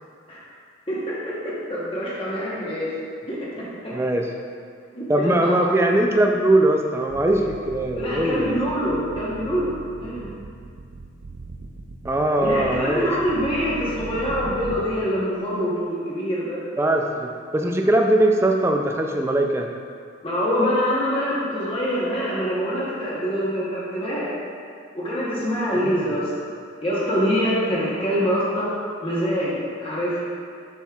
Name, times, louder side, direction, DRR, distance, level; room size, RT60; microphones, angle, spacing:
voice 1, 0.9-1.2 1.7-2.9 3.3-3.4 3.8-3.9 4.9-5.7 8.0-10.3 12.4-16.6 20.2-24.3 24.9-26.5 26.8-28.7 29.0-29.5 29.8-30.2, equal, 25° left, -7 dB, 1.0 m, -25 dB
voice 2, 3.9-4.3 5.1-8.6 12.0-13.1 16.8-19.7 25.7-26.0, right 1 dB, 15° right, 2 dB, 0.3 m, -21 dB
sound 1, 7.1-14.8, right 3 dB, 85° right, 0.4 m, -39 dB
7.0 x 6.2 x 2.4 m, 2.2 s
head